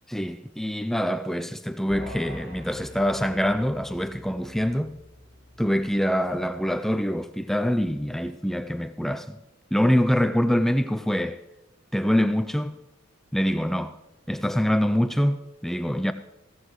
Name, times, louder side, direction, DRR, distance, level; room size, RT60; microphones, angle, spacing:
voice 1, 0.1-4.9 5.6-9.4 9.7-11.4 11.9-12.8 13.3-14.0 14.3-16.1, equal, ahead, 0.4 m, -25 dB
sound 1, 1.9-7.4, equal, 20° right, 5.4 m, -45 dB
16.0 x 14.5 x 3.1 m
head